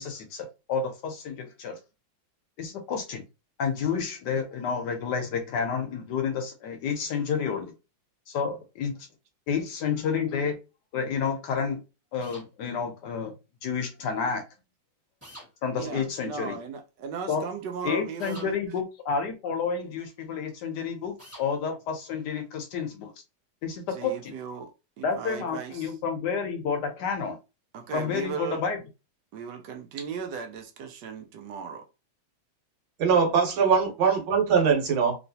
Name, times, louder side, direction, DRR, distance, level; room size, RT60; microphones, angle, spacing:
voice 1, 0.0-1.8 2.6-3.2 3.6-7.7 8.3-8.9 9.5-10.6 10.9-11.8 12.1-13.3 13.6-14.4 15.6-16.6 17.3-17.4 17.8-23.1 23.6-24.3 25.0-27.4 27.9-28.8, left 6 dB, 70° left, 1.1 m, -30 dB
sound 1, 12.2-12.5 15.2-15.5 18.2-18.5 21.2-21.5, equal, 10° right, 1.3 m, -46 dB
voice 2, 15.8-18.6 23.9-25.9 27.7-28.6 29.3-31.9, right 6 dB, 70° right, 1.1 m, -37 dB
voice 3, 33.0-35.2, right 6 dB, 90° right, 1.8 m, -22 dB
3.1 x 3.0 x 2.7 m
omnidirectional pair, 2.1 m